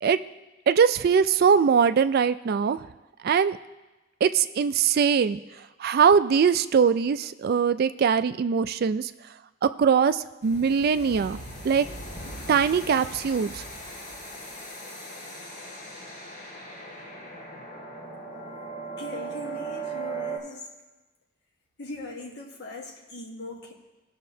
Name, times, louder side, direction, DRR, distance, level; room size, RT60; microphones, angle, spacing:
voice 1, 0.7-2.8 3.2-3.6 4.2-5.4 5.8-9.1 9.8-11.4 11.6-11.9 12.5-13.6, right 6 dB, 50° right, 12 dB, 0.3 m, -21 dB
sound 1, 10.4-20.4, right 3 dB, 35° left, 1.6 m, -38 dB
voice 2, 19.0-20.7 21.8-23.7, left 2 dB, 55° left, -1 dB, 1.2 m, -39 dB
18.5 x 6.5 x 2.7 m, 1.1 s
head